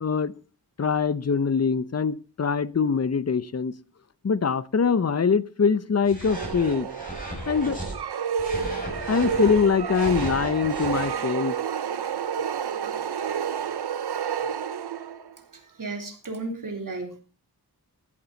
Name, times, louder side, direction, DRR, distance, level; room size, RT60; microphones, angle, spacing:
voice 1, 0.0-0.3 0.8-3.7 4.2-6.9 7.5-7.8 8.6-8.7 9.1-11.5, left 5 dB, 40° left, 0.7 m, -23 dB
sound 1, 6.0-7.9 8.4-11.1, equal, 20° left, 6.5 m, -36 dB
sound 2, 6.2-15.3, right 7 dB, 85° right, 0.9 m, -30 dB
voice 2, 15.8-17.2, right 3 dB, 55° right, 3.5 m, -33 dB
15.5 x 12.0 x 4.0 m
wide cardioid pair, 105°, 38 cm